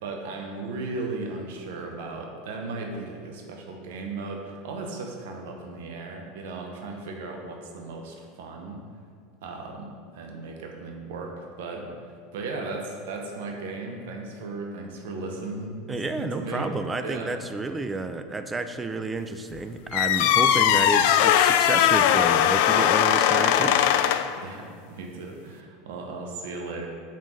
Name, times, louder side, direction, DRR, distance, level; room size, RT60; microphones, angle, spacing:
voice 1, 0.0-8.8 9.4-9.9 10.1-17.3 24.4-26.9, right 3 dB, 65° right, 2 dB, 0.9 m, -36 dB
voice 2, 15.9-23.9, right 3 dB, 15° right, 8 dB, 0.5 m, -31 dB
sound 1, 19.9-24.4, left 10 dB, 60° left, 0.3 m, -20 dB
5.3 x 5.2 x 5.5 m, 2.1 s
hypercardioid pair, 80°, 0 cm